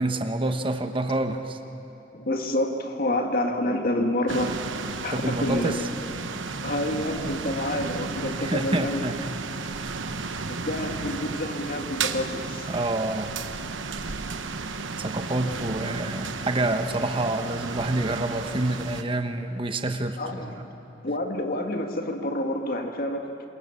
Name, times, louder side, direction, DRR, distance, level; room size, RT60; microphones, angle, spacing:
voice 1, 0.0-1.6 5.1-5.8 8.4-9.2 12.7-13.3 15.0-20.2 20.4-20.7, right 2 dB, 25° right, 7 dB, 1.1 m, -27 dB
voice 2, 2.1-4.6 5.0-5.8 6.6-9.0 10.5-12.7 20.2-20.7 21.0-23.5, left 1 dB, 50° left, 3 dB, 1.8 m, -28 dB
sound 1, 4.3-19.0, right 4 dB, 80° right, 1.0 m, -33 dB
28.0 x 23.5 x 7.0 m, 2.8 s
head